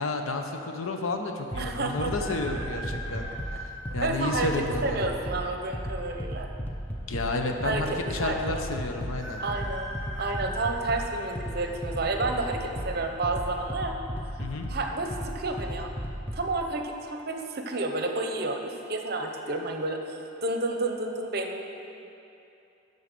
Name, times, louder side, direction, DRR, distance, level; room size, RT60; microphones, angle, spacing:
voice 1, 0.0-3.3 3.5-5.1 7.1-9.4 14.4-14.7, left 2 dB, 85° left, 4 dB, 0.8 m, -31 dB
sound 1, 1.5-16.5, equal, 10° left, 0.5 m, -36 dB
voice 2, 1.6-2.1 4.0-4.5 4.8-6.5 7.6-7.8 8.2-8.6 9.4-9.9 10.2-14.0 14.7-15.9 16.3-21.6, right 2 dB, 50° right, 3 dB, 0.7 m, -30 dB
sound 2, 2.1-4.2 4.8-4.9 6.0-6.7 7.0-7.1 7.2-7.3 9.1-11.8 12.3-12.7 13.8-14.2 14.4-14.5 15.1-15.4 15.9-16.1, right 1 dB, 15° right, 1.8 m, -40 dB
11.0 x 4.0 x 6.7 m, 2.8 s
head